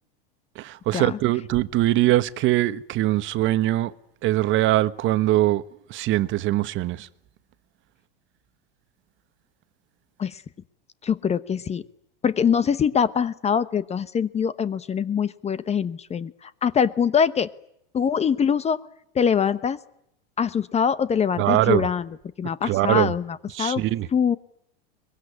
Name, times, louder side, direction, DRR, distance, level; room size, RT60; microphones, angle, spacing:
voice 1, 0.5-3.9 4.2-5.6 5.9-7.1 21.4-21.9 22.6-23.1 23.5-24.1, right 15 dB, 40° right, 1.3 m, -22 dB
voice 2, 11.0-11.8 12.2-17.5 17.9-18.8 19.1-19.8 20.4-22.1 22.4-23.8 24.1-24.4, left 7 dB, 20° left, 1.0 m, -23 dB
23.0 x 22.5 x 9.8 m
supercardioid pair, 120°, 29 cm